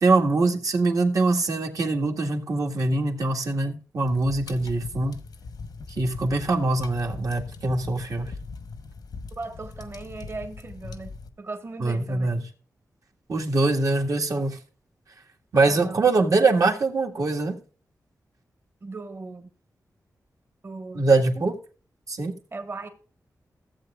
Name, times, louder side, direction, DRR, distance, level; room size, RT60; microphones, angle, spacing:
voice 1, 0.0-5.2 6.0-8.3 11.8-12.4 13.3-14.6 15.5-17.6 20.9-21.5 22.1-22.3, right 3 dB, 60° right, 1.8 m, -23 dB
sound 1, 4.0-11.3, left 4 dB, 90° left, 1.0 m, -40 dB
voice 2, 9.4-11.1 11.4-12.3 14.3-14.5 15.7-16.0 18.8-19.5 20.6-21.4 22.5-22.9, right 3 dB, 40° right, 1.5 m, -37 dB
15.0 x 8.0 x 2.4 m
wide cardioid pair, 95°, 6 cm